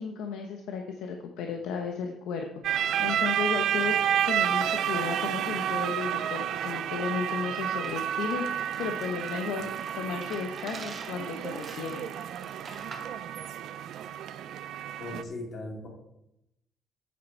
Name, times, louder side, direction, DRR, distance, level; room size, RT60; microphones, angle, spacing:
voice 1, 0.0-12.1, left 5 dB, 90° left, 3 dB, 1.0 m, -34 dB
sound 1, 2.6-15.2, right 10 dB, 55° right, 0.5 m, -30 dB
sound 2, 7.8-13.2, right 3 dB, 25° right, 1.7 m, -47 dB
voice 2, 15.0-15.9, left 2 dB, 40° left, 1 dB, 2.3 m, -38 dB
9.7 x 8.4 x 4.5 m, 0.85 s
cardioid pair, 180°, 0 cm